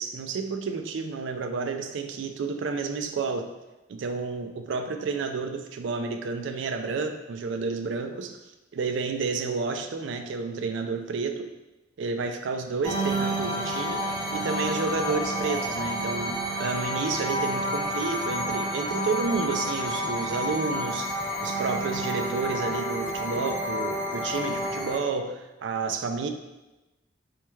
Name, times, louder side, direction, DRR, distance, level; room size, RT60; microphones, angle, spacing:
voice 1, 0.0-3.5 3.9-8.4 8.7-11.5 12.0-26.3, right 4 dB, 70° right, 6 dB, 0.3 m, -30 dB
sound 1, 12.8-25.0, equal, 20° left, 1.3 m, -30 dB
4.3 x 3.1 x 2.3 m, 1.0 s
head